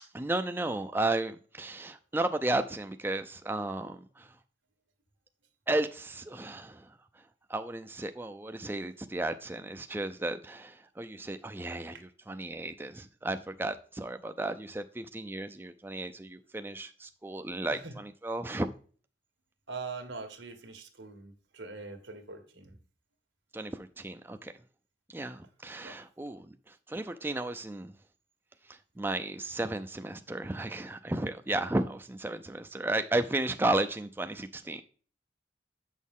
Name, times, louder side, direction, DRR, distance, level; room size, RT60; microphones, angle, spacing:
voice 1, 0.0-4.4 5.7-7.2 7.5-18.7 23.5-24.5 25.1-27.9 28.6-34.8, right 2 dB, 10° right, 0.4 m, -34 dB
voice 2, 19.7-22.8 25.8-26.0, right 4 dB, 85° right, 1.6 m, -43 dB
8.1 x 6.3 x 3.6 m
head